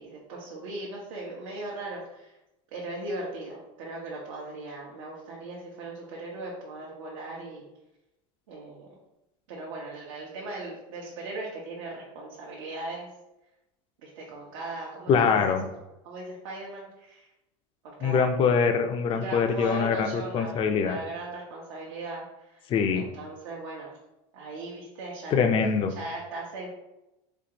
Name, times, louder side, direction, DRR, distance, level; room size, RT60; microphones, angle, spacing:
voice 1, 0.0-2.4 2.7-7.6 8.5-8.9 9.5-13.1 14.0-15.5 16.0-17.3 17.8-18.2 19.1-22.6 22.9-23.9 24.3-25.4 26.0-26.7, right 2 dB, 80° right, -4 dB, 0.9 m, -38 dB
voice 2, 15.1-15.6 18.0-21.0 22.7-23.0 25.3-25.9, left 6 dB, 35° left, 6 dB, 0.4 m, -23 dB
4.3 x 2.4 x 2.8 m, 0.92 s
supercardioid pair, 115°, 16 cm